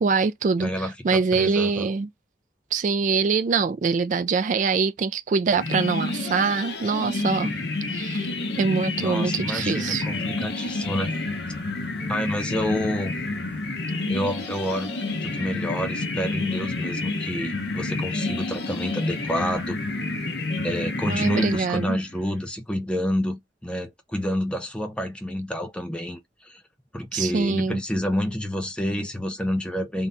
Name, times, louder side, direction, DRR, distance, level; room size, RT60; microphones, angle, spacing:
voice 1, 0.0-0.7 1.0-2.1 2.7-7.5 7.9-8.3 8.6-10.0 21.1-22.0 27.1-27.8, right 4 dB, 45° right, 0.3 m, -24 dB
voice 2, 0.6-1.9 9.0-11.1 12.1-13.2 14.1-14.9 15.2-19.8 20.6-26.6 26.9-30.1, equal, 5° left, 0.6 m, -28 dB
sound 1, 5.6-22.2, left 2 dB, 70° left, 0.9 m, -29 dB
3.7 x 2.2 x 3.9 m
head